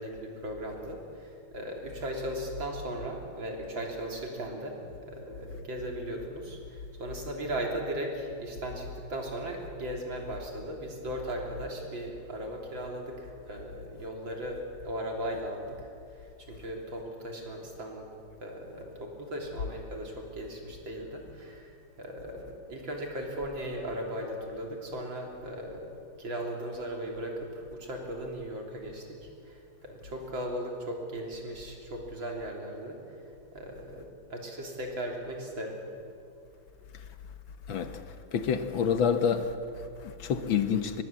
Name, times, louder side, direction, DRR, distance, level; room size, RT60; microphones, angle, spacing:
voice 1, 0.0-18.1 18.4-25.9 26.2-35.8, right 1 dB, 65° right, 4.1 m, -37 dB
voice 2, 37.7-41.0, left 7 dB, 70° left, 1.9 m, -29 dB
24.5 x 21.0 x 7.5 m
omnidirectional pair, 2.3 m